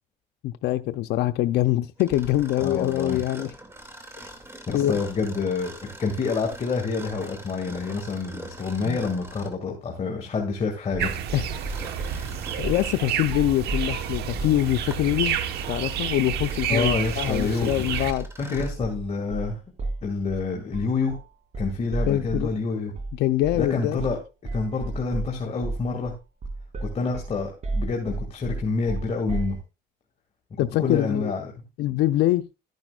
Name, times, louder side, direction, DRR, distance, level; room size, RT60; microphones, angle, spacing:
voice 1, 0.4-3.5 4.7-5.0 8.8-9.0 11.3-11.5 12.6-15.4 15.7-18.3 22.1-22.5 23.2-24.0 30.6-31.3 31.8-32.4, left 14 dB, 80° left, 0.6 m, -24 dB
Mechanisms, 2.0-9.7 11.5-13.1 13.7-13.8 14.5-18.8, right 1 dB, 15° right, 2.4 m, -44 dB
voice 2, 2.6-3.2 4.7-11.1 16.7-17.8 18.4-19.6 20.0-21.2 21.6-22.9 23.5-24.2 24.5-26.1 26.8-29.6 30.5-31.5, left 4 dB, 40° left, 2.2 m, -27 dB
sound 1, 11.0-18.1, right 8 dB, 75° right, 1.2 m, -30 dB
sound 2, 11.3-12.2 12.6-12.9 13.2-14.6 15.0-15.3 15.6-15.9 16.2-16.5 16.8-17.1 17.3-22.6 23.0-23.2 23.4-23.7 24.0-24.2 24.5-29.6, right 2 dB, 40° right, 2.6 m, -33 dB
12.5 x 10.5 x 2.4 m
cardioid pair, 110°, 17 cm